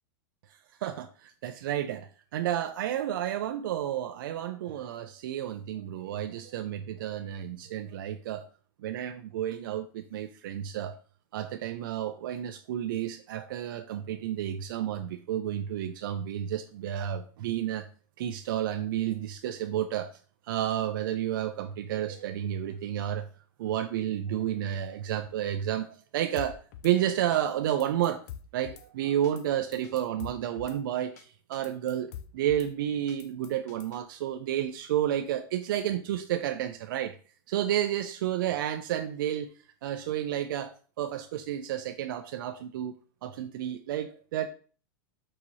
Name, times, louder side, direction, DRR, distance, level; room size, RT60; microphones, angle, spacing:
voice 1, 0.5-8.4 8.8-11.0 11.3-17.9 18.2-20.1 20.4-23.3 23.6-28.2 28.5-37.2 37.5-39.5 39.8-42.9 43.2-44.5, right 11 dB, 70° right, 6 dB, 0.4 m, -31 dB
Drum kit / Snare drum, 26.4-26.9 27.3-27.4 27.7-28.9 29.2-29.4 29.7-30.8 31.2-31.3 31.5-32.7 33.1-34.0, left 9 dB, 45° left, 0.4 m, -45 dB
4.7 x 2.8 x 4.0 m, 0.41 s
supercardioid pair, 165°, 12 cm